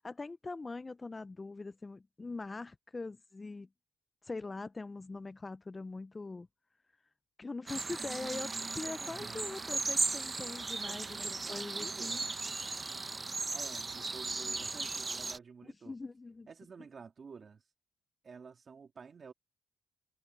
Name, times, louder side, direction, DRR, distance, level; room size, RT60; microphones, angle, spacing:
voice 1, 0.0-3.7 4.2-6.5 7.4-12.2 15.6-16.5, left 3 dB, 25° left, 0.4 m, -42 dB
sound 1, 7.7-15.4, right 3 dB, 25° right, 1.0 m, -37 dB
voice 2, 9.0-9.6 10.8-12.3 13.5-15.9 16.5-17.6 18.2-19.3, right 5 dB, 40° right, 2.5 m, -51 dB
cardioid pair, 90°, 0 cm